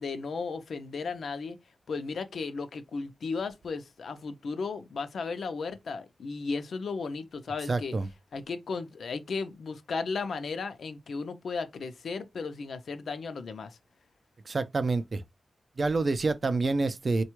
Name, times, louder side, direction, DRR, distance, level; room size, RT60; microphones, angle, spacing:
voice 1, 0.0-1.6 1.9-7.9 8.3-13.8, left 4 dB, 90° left, 0.5 m, -35 dB
voice 2, 7.7-8.1 14.5-15.2 15.8-17.2, right 3 dB, 40° right, 0.4 m, -27 dB
4.2 x 2.2 x 3.0 m
wide cardioid pair, 150°, 0 cm